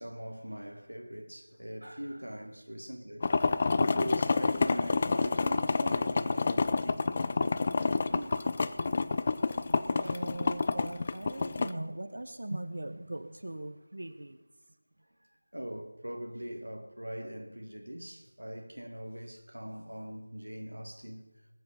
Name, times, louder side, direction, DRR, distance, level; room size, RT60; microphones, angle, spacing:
voice 1, 0.0-3.3 3.7-8.4 10.0-10.2 15.2-21.5, equal, 75° right, 1.7 m, -42 dB
sound 1, 3.2-11.7, left 4 dB, 25° left, 0.4 m, -28 dB
voice 2, 9.7-14.4, right 1 dB, 55° right, 0.9 m, -40 dB
20.0 x 8.1 x 5.6 m
figure-of-eight pair, 165°, 0 cm